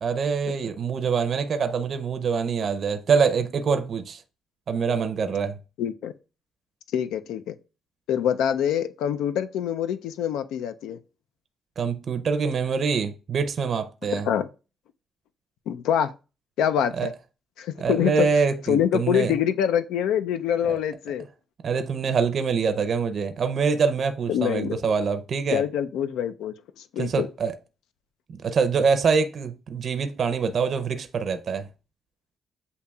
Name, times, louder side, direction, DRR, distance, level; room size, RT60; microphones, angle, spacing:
voice 1, 0.0-4.2 4.7-5.6 11.8-14.3 16.9-17.1 17.8-19.3 20.7-20.8 21.6-25.6 27.0-27.5 28.4-31.7, right 5 dB, 55° right, 0.5 m, -25 dB
voice 2, 5.8-6.1 6.9-7.6 8.1-11.0 14.1-14.5 15.7-16.1 16.6-17.1 17.6-18.3 18.7-21.3 24.3-24.8 25.5-27.3, left 9 dB, 90° left, 0.4 m, -25 dB
8.1 x 2.8 x 2.3 m
cardioid pair, 90°, 0 cm